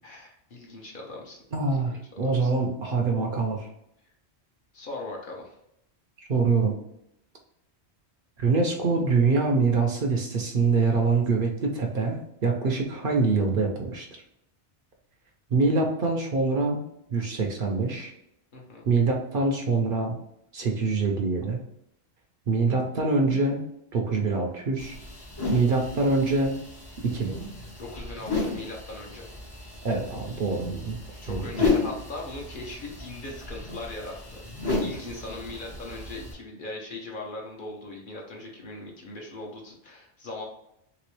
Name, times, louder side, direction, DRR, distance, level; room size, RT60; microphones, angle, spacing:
voice 1, 0.0-1.4 1.9-2.5 4.7-5.6 18.5-18.9 27.8-29.3 31.1-40.4, left 2 dB, 50° left, -2 dB, 0.9 m, -40 dB
voice 2, 1.5-3.7 6.2-6.8 8.4-14.1 15.5-16.8 17.1-18.1 18.9-20.1 20.5-21.6 22.5-23.6 23.9-25.0 25.5-26.6 27.0-27.4 29.8-31.0 31.3-31.4, right 3 dB, 60° right, 1 dB, 0.7 m, -24 dB
sound 1, 24.8-36.3, left 3 dB, 25° left, 0.6 m, -33 dB
3.2 x 3.0 x 3.1 m, 0.80 s
omnidirectional pair, 1.2 m